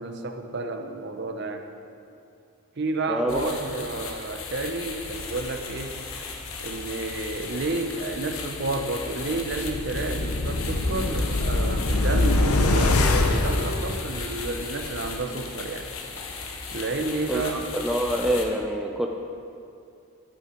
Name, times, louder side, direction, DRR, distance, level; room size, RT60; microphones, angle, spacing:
voice 1, 0.0-1.7 2.8-6.0 6.6-13.0 13.3-15.9 16.7-17.6, right 2 dB, 50° right, 6 dB, 0.7 m, -31 dB
voice 2, 3.1-3.5 17.3-17.4 17.7-19.1, equal, ahead, 2 dB, 0.4 m, -26 dB
sound 1, 3.3-18.5, left 4 dB, 70° left, 1.1 m, -36 dB
sound 2, 9.3-14.5 14.9-15.0, left 2 dB, 90° left, 0.8 m, -24 dB
11.5 x 8.8 x 4.4 m, 2.5 s
head